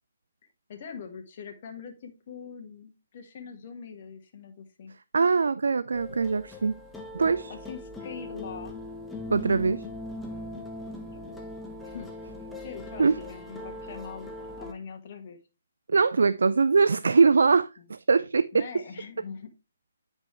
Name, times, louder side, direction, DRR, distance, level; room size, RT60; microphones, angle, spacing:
voice 1, 0.7-4.9 7.5-8.8 10.9-11.5 11.8-12.1 12.6-15.4 18.5-19.5, left 6 dB, 45° left, 1.5 m, -43 dB
voice 2, 5.1-6.7 7.1-7.5 9.3-9.8 13.0-13.1 15.9-18.7, right 4 dB, 65° right, 0.3 m, -22 dB
sound 1, 5.9-14.7, left 1 dB, 5° left, 1.0 m, -40 dB
8.9 x 5.3 x 3.2 m
figure-of-eight pair, 135°, 0 cm